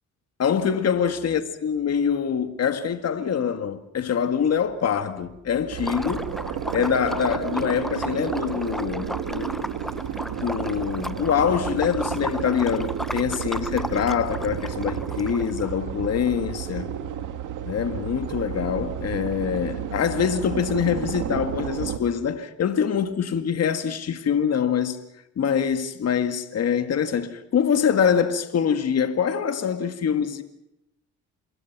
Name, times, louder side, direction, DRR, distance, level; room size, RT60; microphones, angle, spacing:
voice 1, 0.4-6.3 6.7-9.5 10.4-16.9 17.7-25.0 25.4-30.4, left 7 dB, 55° left, 2.1 m, -24 dB
sound 1, 5.7-22.0, right 9 dB, 80° right, 2.4 m, -32 dB
Liquid, 5.8-15.7, equal, ahead, 1.0 m, -35 dB
27.5 x 21.5 x 6.1 m
cardioid pair, 90°, 30 cm